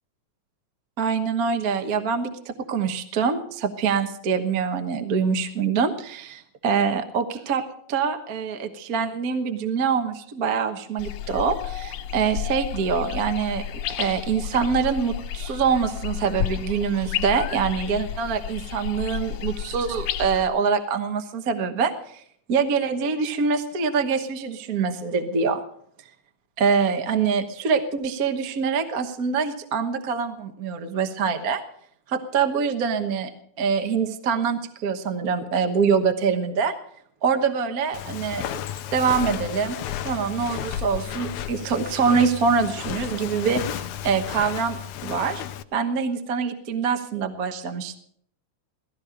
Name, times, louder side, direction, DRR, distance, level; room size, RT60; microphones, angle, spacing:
voice 1, 1.0-7.6 7.9-13.6 13.9-22.2 22.5-25.6 26.6-31.6 32.1-33.3 33.6-36.8 37.2-38.6 38.9-39.8 40.0-45.4 45.7-48.0, right 6 dB, 50° right, 7 dB, 1.1 m, -24 dB
sound 1, 11.0-20.5, left 10 dB, 70° left, 2.1 m, -32 dB
Walk footsteps, 37.9-45.6, left 11 dB, 85° left, 2.2 m, -33 dB
17.5 x 15.5 x 5.0 m, 0.65 s
omnidirectional pair, 3.3 m